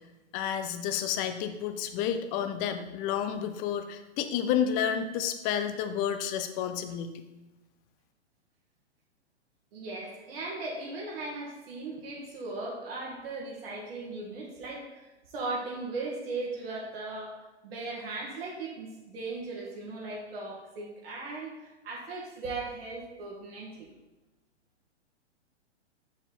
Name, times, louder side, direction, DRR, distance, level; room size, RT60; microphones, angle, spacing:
voice 1, 0.3-7.2, left 9 dB, 25° left, 9 dB, 0.5 m, -30 dB
voice 2, 9.7-17.4 17.6-23.9, right 3 dB, 55° right, -4 dB, 1.8 m, -38 dB
6.6 x 5.8 x 4.3 m, 1.1 s
hypercardioid pair, 120°, 35 cm